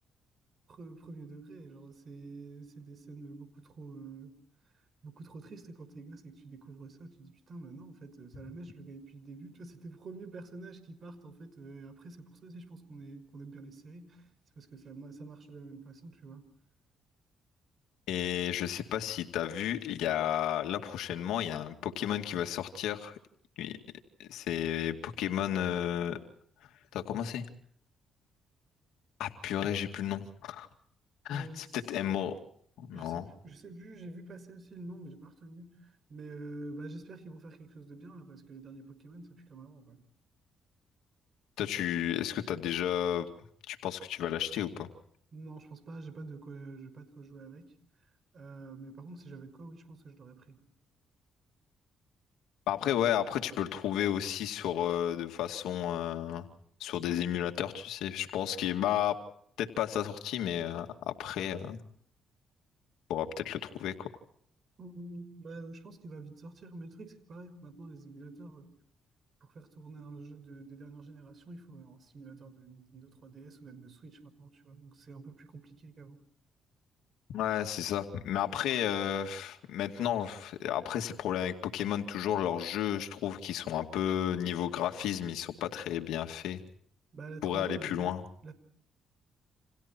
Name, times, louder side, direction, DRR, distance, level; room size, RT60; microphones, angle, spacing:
voice 1, 0.7-4.4 5.0-14.3 14.6-16.4 31.3-31.8 32.9-40.0 45.3-47.7 48.3-50.6 64.8-68.7 69.4-76.2 87.1-88.1 88.4-88.5, right 3 dB, 50° right, 12 dB, 5.8 m, -47 dB
voice 2, 18.1-23.2 23.6-23.8 24.2-26.2 26.9-27.4 29.2-30.7 31.2-32.3 32.8-33.3 41.6-43.3 43.7-44.9 52.7-56.5 56.8-59.2 59.6-61.8 63.1-64.1 77.3-86.6 87.4-88.2, left 10 dB, 90° left, 5 dB, 2.3 m, -32 dB
30.0 x 28.0 x 4.5 m, 0.65 s
cardioid pair, 90°, 0 cm